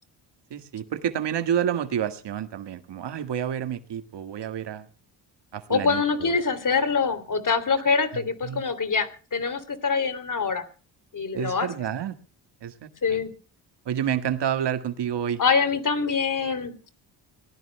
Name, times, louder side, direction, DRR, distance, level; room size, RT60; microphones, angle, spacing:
voice 1, 0.5-4.9 5.5-6.4 8.1-8.6 11.3-12.2 12.6-13.2 13.9-15.4, right 9 dB, 55° right, 10 dB, 1.9 m, -29 dB
voice 2, 5.7-10.6 11.1-11.7 13.0-13.3 15.4-16.8, left 5 dB, 40° left, 11 dB, 3.2 m, -24 dB
25.0 x 18.5 x 2.3 m, 0.40 s
supercardioid pair, 55°, 48 cm